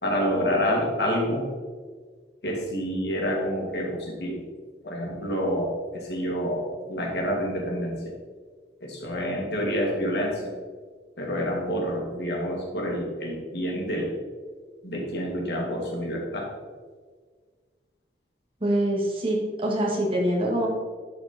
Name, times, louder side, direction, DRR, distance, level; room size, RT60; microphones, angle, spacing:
voice 1, 0.0-1.5 2.4-4.4 4.8-8.1 8.8-10.4 11.2-14.1 14.8-16.5, equal, 65° left, -1 dB, 2.3 m, -28 dB
voice 2, 18.6-20.7, right 1 dB, 30° right, -3 dB, 2.2 m, -24 dB
11.5 x 4.9 x 4.4 m, 1.5 s
head